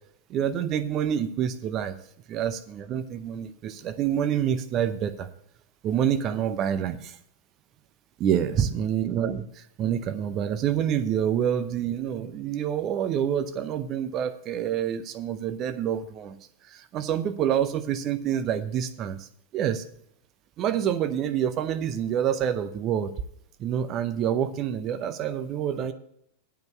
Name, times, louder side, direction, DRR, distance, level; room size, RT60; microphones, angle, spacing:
voice 1, 0.3-2.0 2.3-5.3 5.8-7.2 8.2-16.4 16.7-19.3 19.5-19.8 20.6-23.1 23.6-25.9, right 9 dB, 35° right, 10 dB, 0.7 m, -27 dB
9.1 x 5.3 x 8.0 m, 0.71 s
figure-of-eight pair, 90°, 0 cm